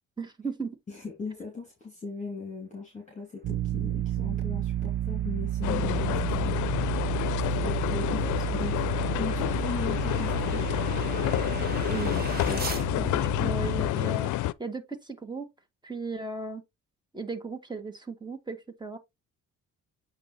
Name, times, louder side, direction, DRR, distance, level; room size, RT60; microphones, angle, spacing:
voice 1, 0.2-0.8 11.9-12.6 13.0-15.5 15.8-16.6 17.1-19.0, right 3 dB, 15° right, 1.7 m, -36 dB
voice 2, 0.9-7.0 7.4-8.8 9.2-10.6, left 4 dB, 25° left, 2.6 m, -38 dB
sound 1, 3.4-13.9, right 13 dB, 50° right, 0.4 m, -32 dB
sound 2, 4.2-12.9, right 4 dB, 30° right, 1.3 m, -43 dB
sound 3, 5.6-14.5, left 16 dB, 80° left, 0.5 m, -29 dB
8.5 x 2.8 x 4.2 m
cardioid pair, 90°, 30 cm